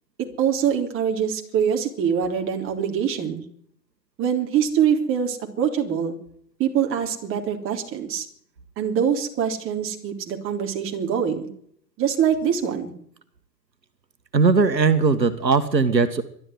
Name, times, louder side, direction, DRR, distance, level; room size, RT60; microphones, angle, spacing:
voice 1, 0.2-3.4 4.2-6.1 6.6-8.3 8.8-11.5 12.0-12.9, right 8 dB, 25° right, 3 dB, 3.6 m, -24 dB
voice 2, 14.3-16.2, right 4 dB, 90° right, 10 dB, 1.8 m, -19 dB
21.5 x 12.5 x 9.5 m, 0.66 s
figure-of-eight pair, 115°, 49 cm